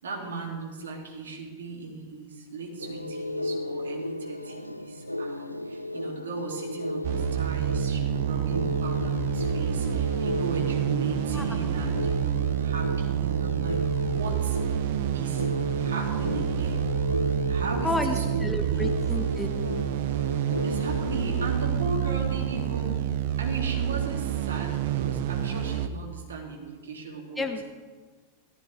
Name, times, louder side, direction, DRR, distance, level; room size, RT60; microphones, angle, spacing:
voice 1, 0.0-14.8 15.1-16.8 17.5-18.9 20.6-27.5, right 3 dB, 65° right, 0 dB, 3.4 m, -37 dB
sound 1, 2.8-22.2, left 1 dB, 90° left, 0.4 m, -35 dB
sound 2, 7.0-25.9, right 10 dB, 50° right, 0.7 m, -28 dB
voice 2, 17.8-19.5 27.4-27.6, left 2 dB, 5° left, 4 dB, 1.2 m, -30 dB
18.0 x 14.5 x 3.7 m, 1.4 s
figure-of-eight pair, 90°, 0 cm